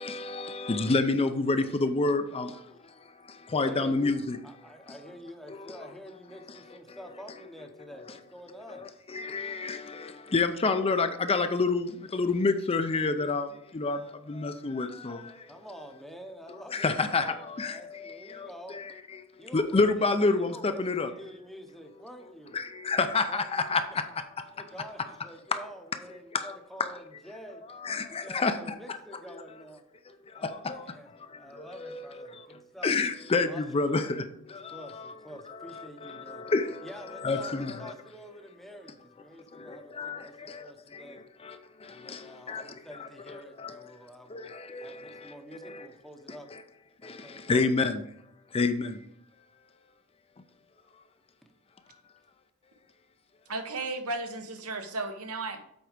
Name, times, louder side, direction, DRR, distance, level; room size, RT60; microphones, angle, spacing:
voice 1, 0.0-4.4 4.9-5.0 5.5-5.9 6.9-7.0 8.7-15.5 16.7-21.1 22.5-24.6 25.5-25.6 26.3-26.9 27.5-29.0 30.0-35.2 35.5-37.9 39.3-45.9 46.3-46.6 47.0-48.0 48.5-49.1 50.9-51.0 51.9-52.0, left 3 dB, 25° left, 0.5 m, -30 dB
voice 2, 3.6-4.2 4.4-8.8 15.5-17.4 17.6-18.8 19.4-22.6 23.3-23.5 24.6-27.6 28.1-29.8 30.3-31.1 31.4-32.9 33.5-33.6 34.7-36.4 36.8-40.3 40.6-41.2 41.9-44.5 44.8-46.5 47.0-47.7 51.4-51.5, equal, ahead, 0.8 m, -47 dB
voice 3, 53.5-55.6, right 2 dB, 80° right, 1.1 m, -34 dB
8.0 x 4.5 x 5.0 m
head